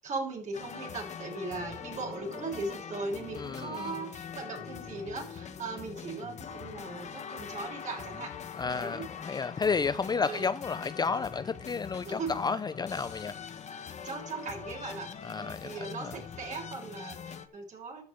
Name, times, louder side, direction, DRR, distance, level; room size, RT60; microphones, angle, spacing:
voice 1, 0.0-8.3 8.7-9.1 10.2-10.4 12.0-12.4 14.0-15.1 15.4-18.0, right 3 dB, 45° right, 6.8 m, -38 dB
sound 1, 0.5-17.5, left 7 dB, 40° left, 1.5 m, -43 dB
voice 2, 3.4-3.9 8.6-13.3 15.2-16.1, left 5 dB, 25° left, 0.5 m, -32 dB
14.0 x 10.5 x 3.5 m
cardioid pair, 110°, 17 cm